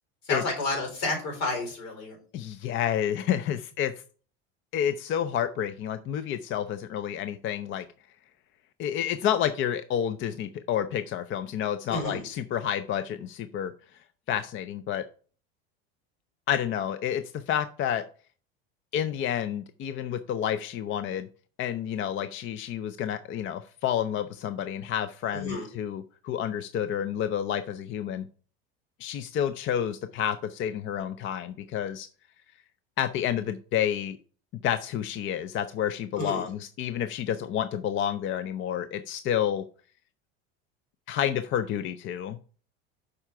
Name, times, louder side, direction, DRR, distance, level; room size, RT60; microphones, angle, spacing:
voice 1, 0.2-2.2 11.9-12.2 25.3-25.7 36.2-36.5, left 2 dB, 75° left, 2 dB, 4.2 m, -31 dB
voice 2, 2.3-3.9 4.7-7.9 8.8-13.7 14.3-15.0 16.5-18.0 18.9-21.3 21.6-28.3 29.0-32.1 33.0-34.2 34.6-39.6 41.1-42.4, left 9 dB, 40° left, 11 dB, 0.5 m, -29 dB
7.0 x 5.0 x 4.6 m, 0.40 s
supercardioid pair, 95°, 30 cm